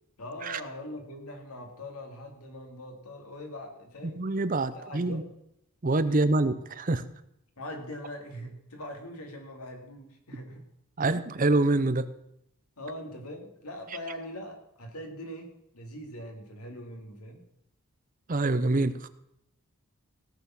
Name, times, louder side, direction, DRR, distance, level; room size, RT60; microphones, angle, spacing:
voice 1, 0.2-4.2 4.7-5.3 7.6-10.7 12.8-17.4, left 1 dB, 90° left, 3 dB, 2.8 m, -42 dB
voice 2, 4.0-5.2 5.8-7.0 11.0-12.1 18.3-19.1, right 2 dB, 35° right, 13 dB, 0.6 m, -26 dB
17.0 x 7.0 x 6.0 m, 0.79 s
head